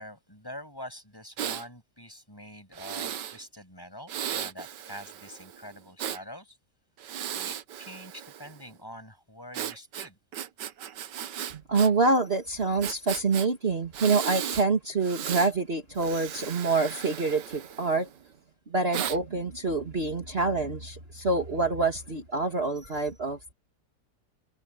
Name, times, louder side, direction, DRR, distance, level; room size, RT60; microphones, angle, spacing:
voice 1, 0.0-6.6 7.4-10.2, equal, 10° left, 6.8 m, -45 dB
Breathing, 1.4-1.6 2.7-3.4 4.1-6.2 7.0-8.6 9.5-11.9 12.2-12.3 12.8-13.5 13.9-14.7 15.0-15.5 15.9-18.1 18.9-19.2, right 9 dB, 85° right, 1.6 m, -36 dB
voice 2, 11.7-18.1 18.7-23.5, right 3 dB, 35° right, 2.5 m, -26 dB
omnidirectional pair, 1.8 m